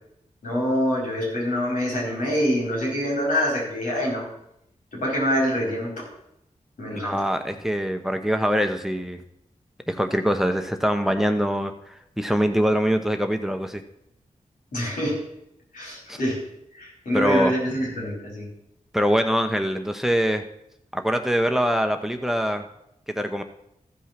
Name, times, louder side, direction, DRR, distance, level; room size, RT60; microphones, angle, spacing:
voice 1, 0.4-4.3 4.9-6.1 6.8-7.1 14.7-15.2 15.7-16.4 16.7-18.5, equal, 80° left, -3 dB, 4.7 m, -25 dB
voice 2, 6.9-9.2 9.9-13.8 16.1-16.2 17.1-17.5 18.9-20.4 20.9-22.6 23.1-23.4, equal, 5° right, 7 dB, 1.0 m, -23 dB
14.0 x 5.5 x 6.0 m, 0.78 s
cardioid pair, 45°, 14 cm